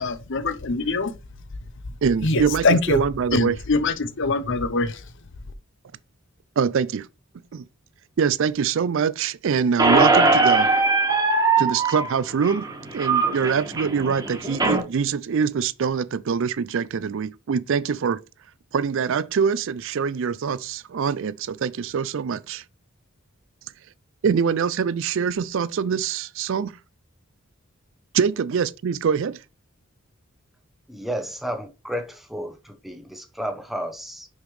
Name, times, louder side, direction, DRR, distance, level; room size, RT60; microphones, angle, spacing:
voice 1, 0.0-1.1 2.2-3.0 3.3-4.9, left 3 dB, 55° left, 0.7 m, -23 dB
voice 2, 2.0-3.6 6.6-7.1 7.5-7.6 8.2-10.7 11.6-12.7 12.9-18.2 18.7-22.6 24.2-26.7 28.1-29.4, right 6 dB, 60° right, 0.4 m, -24 dB
Squeak, 9.8-14.8, right 3 dB, 15° right, 1.5 m, -20 dB
voice 3, 30.9-34.3, equal, ahead, 0.8 m, -32 dB
6.2 x 5.2 x 3.2 m
head